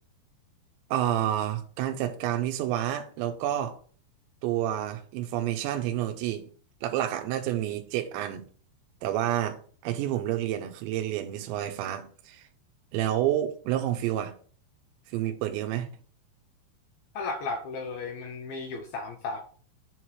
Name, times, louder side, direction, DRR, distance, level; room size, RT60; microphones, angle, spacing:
voice 1, 0.9-3.8 4.4-6.5 6.8-8.4 9.0-12.4 12.9-14.3 15.1-15.9, right 12 dB, 90° right, 3.0 m, -29 dB
voice 2, 17.1-19.4, left 3 dB, 80° left, 2.2 m, -34 dB
7.1 x 3.1 x 5.6 m
omnidirectional pair, 5.1 m